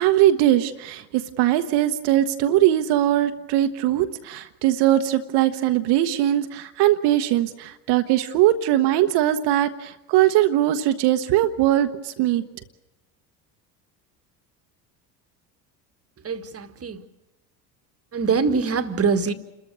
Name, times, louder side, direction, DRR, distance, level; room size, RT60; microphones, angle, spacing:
voice 1, 0.0-12.4, right 13 dB, 55° right, 8 dB, 1.1 m, -20 dB
voice 2, 16.2-17.0 18.1-19.3, right 5 dB, 30° right, 10 dB, 1.6 m, -23 dB
29.0 x 13.5 x 8.3 m, 1.0 s
hypercardioid pair, 65°, 50 cm